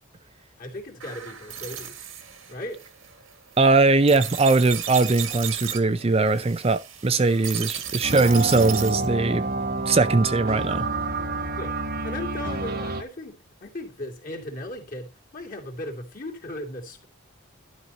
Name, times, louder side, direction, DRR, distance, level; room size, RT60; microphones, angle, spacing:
voice 1, 0.6-2.0 2.5-2.8 11.6-17.1, left 1 dB, 40° left, 2.6 m, -37 dB
sound 1, 1.0-9.1, right 9 dB, 75° right, 1.8 m, -35 dB
voice 2, 3.6-9.4 9.9-10.9, right 3 dB, 30° right, 0.5 m, -20 dB
sound 2, 8.0-13.0, right 3 dB, 45° right, 1.1 m, -28 dB
12.0 x 5.4 x 4.1 m
head